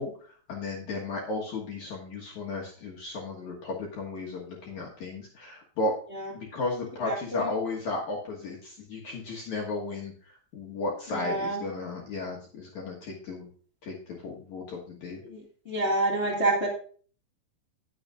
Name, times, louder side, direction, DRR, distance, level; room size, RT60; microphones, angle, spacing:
voice 1, 0.0-5.9 6.3-13.5 13.8-15.2, left 3 dB, 60° left, -2 dB, 2.1 m, -34 dB
voice 2, 7.0-7.5 11.1-11.6 15.3-15.4 15.6-16.7, right 2 dB, 30° left, -4 dB, 1.2 m, -27 dB
18.5 x 6.5 x 2.5 m, 0.43 s
omnidirectional pair, 5.1 m